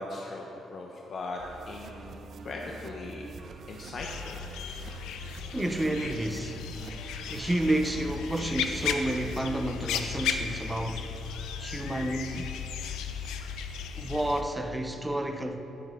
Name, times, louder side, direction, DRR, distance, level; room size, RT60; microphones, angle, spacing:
voice 1, 0.0-1.4 1.7-3.3 3.7-4.4, left 2 dB, 55° left, 0.7 m, -39 dB
sound 1, 1.4-9.4, right 4 dB, 60° right, 0.5 m, -46 dB
sound 2, 4.0-14.4, left 7 dB, 90° left, 0.5 m, -35 dB
voice 2, 5.5-6.6 7.3-11.2 11.6-12.5 13.9-15.6, right 1 dB, 10° right, 0.6 m, -30 dB
9.2 x 8.7 x 3.7 m
cardioid pair, 90°, 0 cm